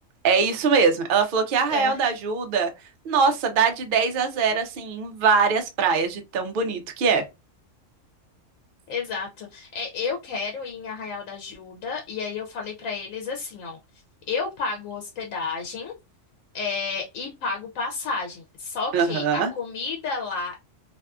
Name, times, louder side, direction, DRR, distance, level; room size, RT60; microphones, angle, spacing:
voice 1, 0.2-2.7 3.1-7.2 18.9-19.5, right 5 dB, 60° right, 0.5 m, -22 dB
voice 2, 1.7-2.0 8.9-13.8 14.3-15.9 16.5-20.6, left 4 dB, 90° left, 1.0 m, -31 dB
2.6 x 2.3 x 2.3 m
omnidirectional pair, 1.3 m